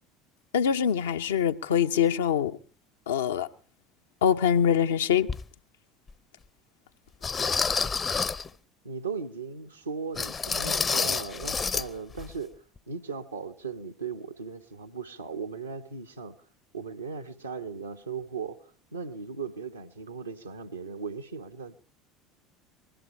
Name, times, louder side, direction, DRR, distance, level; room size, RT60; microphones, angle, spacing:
voice 1, 0.5-2.5 3.1-3.5 4.2-5.3, left 8 dB, 70° left, 0.7 m, -24 dB
sound 1, 5.3-5.4 6.1-6.2 7.2-8.5 10.2-11.9 12.1-12.3 12.8-12.9, left 5 dB, 25° left, 0.7 m, -28 dB
voice 2, 8.8-12.5 12.9-16.3 16.7-18.6 18.9-21.8, right 5 dB, 80° right, 1.1 m, -37 dB
20.5 x 14.5 x 4.4 m
figure-of-eight pair, 65°, 0 cm